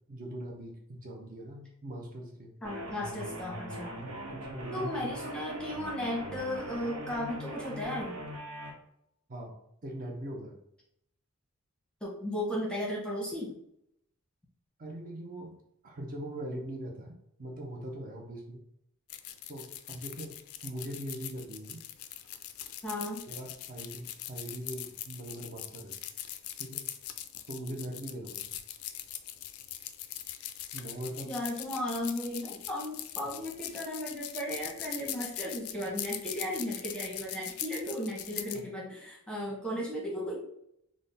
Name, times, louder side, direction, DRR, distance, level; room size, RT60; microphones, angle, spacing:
voice 1, 0.1-2.5 4.0-5.1 9.3-9.6 9.8-10.6 14.8-15.6 15.8-18.6 19.5-21.8 23.3-26.0 26.6-26.9 27.5-28.6 30.7-31.4 38.5-38.7, right 1 dB, 40° right, -1 dB, 0.5 m, -41 dB
voice 2, 2.6-3.9 4.7-8.1 12.0-13.5 22.8-23.3 31.3-40.4, left 1 dB, 5° left, -4 dB, 0.7 m, -35 dB
sound 1, 2.6-8.7, right 1 dB, 90° right, 1.0 m, -41 dB
sound 2, 19.1-38.6, left 12 dB, 80° left, 0.3 m, -41 dB
3.6 x 2.1 x 3.8 m, 0.75 s
head